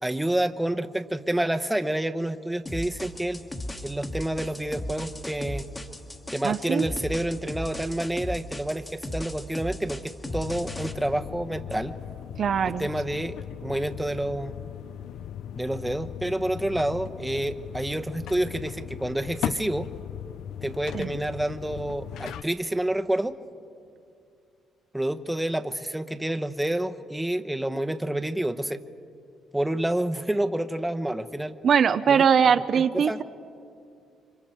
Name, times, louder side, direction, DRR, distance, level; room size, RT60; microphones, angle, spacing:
voice 1, 0.0-3.4 3.8-5.7 6.3-11.9 12.8-13.3 13.6-14.5 15.6-19.9 20.6-23.4 24.9-28.8 29.5-31.5 32.1-32.2 32.9-33.2, right 1 dB, 5° right, 8 dB, 0.9 m, -28 dB
sound 1, 2.7-10.9, left 1 dB, 20° left, 1.5 m, -36 dB
voice 2, 6.4-6.9 12.4-12.9 20.9-21.1 31.6-33.2, right 7 dB, 55° right, 11 dB, 0.5 m, -21 dB
sound 2, 10.2-22.4, left 10 dB, 80° left, 0.5 m, -38 dB
29.0 x 25.0 x 4.5 m, 2.5 s
cardioid pair, 90°, 0 cm